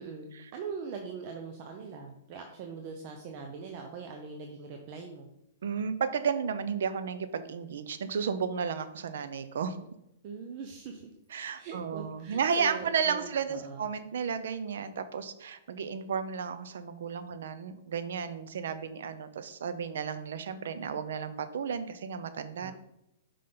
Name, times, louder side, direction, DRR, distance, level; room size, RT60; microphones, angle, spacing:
voice 1, 0.0-5.3 10.2-11.1 11.5-13.9 22.6-22.7, right 5 dB, 40° right, 3 dB, 0.7 m, -42 dB
voice 2, 5.6-9.8 11.3-22.7, right 6 dB, 75° right, 11 dB, 0.7 m, -33 dB
5.9 x 5.0 x 3.8 m, 0.83 s
hypercardioid pair, 150°, 0 cm